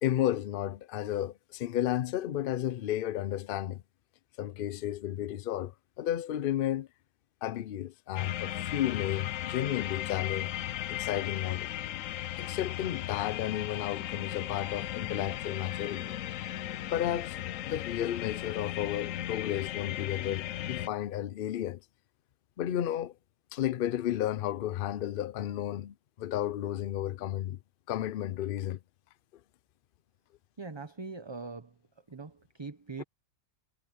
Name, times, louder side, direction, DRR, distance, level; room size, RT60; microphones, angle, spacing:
voice 1, 0.0-3.8 4.4-6.9 7.4-10.5 10.9-11.7 12.4-16.1 16.9-17.4 17.7-21.8 22.6-23.1 23.5-27.6 27.9-28.8 33.0-33.1, left 12 dB, 55° left, 0.6 m, -33 dB
sound 1, 8.2-20.9, left 12 dB, 80° left, 1.0 m, -36 dB
voice 2, 30.6-31.8 32.1-33.0, right 4 dB, 20° right, 1.0 m, -42 dB
omnidirectional pair, 1.4 m